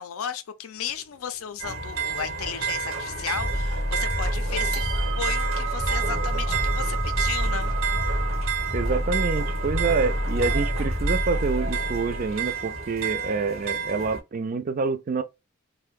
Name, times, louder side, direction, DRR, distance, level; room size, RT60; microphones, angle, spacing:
voice 1, 0.0-7.7, left 8 dB, 80° left, 0.4 m, -34 dB
sound 1, 0.8-2.8 3.1-3.2 3.6-4.1 4.5-12.6, right 11 dB, 90° right, 0.5 m, -37 dB
sound 2, 1.6-14.2, right 6 dB, 65° right, 1.0 m, -31 dB
sound 3, 3.4-12.5, equal, 15° left, 0.5 m, -28 dB
voice 2, 8.7-15.2, right 4 dB, 40° right, 0.3 m, -27 dB
2.6 x 2.1 x 3.5 m
head